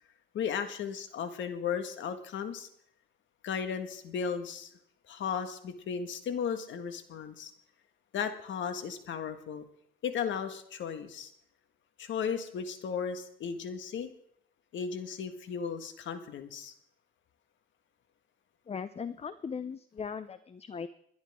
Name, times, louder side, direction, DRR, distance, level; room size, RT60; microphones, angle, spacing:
voice 1, 0.3-2.7 3.4-4.7 5.1-7.5 8.1-9.6 10.0-11.3 12.0-14.1 14.7-16.7, left 7 dB, 70° left, 8 dB, 1.7 m, -35 dB
voice 2, 18.7-20.9, left 6 dB, 30° left, 14 dB, 0.6 m, -38 dB
29.0 x 10.5 x 3.7 m, 0.70 s
cardioid pair, 90°, 20 cm